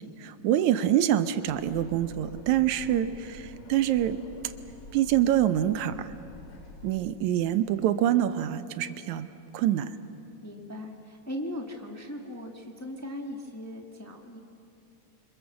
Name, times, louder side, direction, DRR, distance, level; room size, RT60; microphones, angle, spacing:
voice 1, 0.2-3.1 3.7-4.2 4.9-6.1 6.8-9.3 9.5-10.0, right 11 dB, 80° right, 11 dB, 2.2 m, -25 dB
sound 1, 1.5-7.0, left 2 dB, 85° left, 4.0 m, -48 dB
voice 2, 2.9-3.2 10.4-14.4, left 1 dB, 5° left, 2 dB, 1.3 m, -39 dB
28.5 x 26.0 x 7.2 m, 2.6 s
omnidirectional pair, 3.4 m